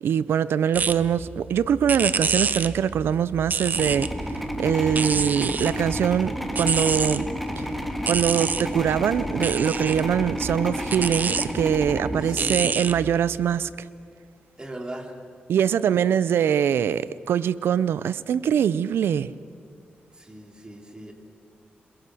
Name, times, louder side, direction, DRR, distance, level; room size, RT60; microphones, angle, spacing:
voice 1, 0.0-7.3 7.6-7.7 8.1-13.7 15.5-19.3, right 8 dB, 85° right, 17 dB, 0.6 m, -23 dB
sound 1, 0.7-13.6, right 5 dB, 50° right, 0.8 m, -29 dB
sound 2, 3.6-13.0, equal, ahead, 2.2 m, -31 dB
voice 2, 12.1-12.8 14.6-15.2 20.1-21.1, right 1 dB, 20° right, 3 dB, 3.5 m, -38 dB
27.0 x 21.5 x 6.3 m, 2.1 s
cardioid pair, 85°, 4 cm